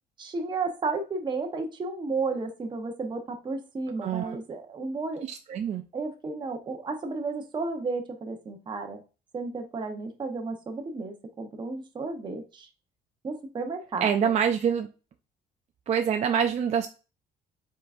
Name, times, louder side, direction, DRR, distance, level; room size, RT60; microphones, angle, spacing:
voice 1, 0.2-5.2 5.9-9.0 9.3-12.7 13.2-14.3, right 3 dB, 25° right, 3 dB, 0.8 m, -33 dB
voice 2, 4.0-4.4 5.3-5.8 14.0-14.9 15.9-16.9, right 8 dB, 40° right, 5 dB, 0.5 m, -25 dB
4.5 x 3.9 x 2.4 m, 0.32 s
cardioid pair, 110°, 17 cm